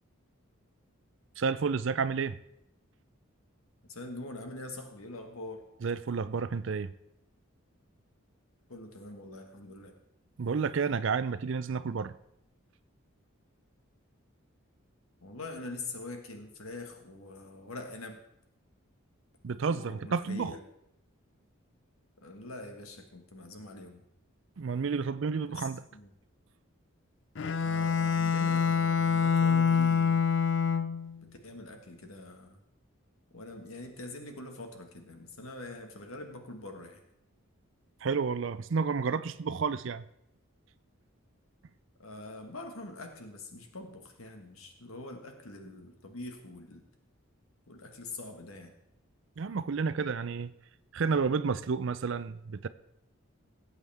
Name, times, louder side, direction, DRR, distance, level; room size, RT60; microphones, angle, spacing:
voice 1, 1.4-2.4 5.8-6.9 10.4-12.1 19.4-20.5 24.6-25.8 38.0-40.0 49.4-50.5 50.9-52.7, right 5 dB, 65° right, 0.4 m, -30 dB
voice 2, 3.9-5.6 8.7-9.9 15.2-18.2 19.7-20.6 22.2-24.0 25.5-26.1 27.6-30.2 31.4-32.6 33.3-37.0 42.0-46.8 47.7-48.7, left 2 dB, 90° left, 1.7 m, -44 dB
Bowed string instrument, 27.4-31.2, left 6 dB, 60° left, 0.5 m, -26 dB
18.0 x 8.0 x 3.5 m
head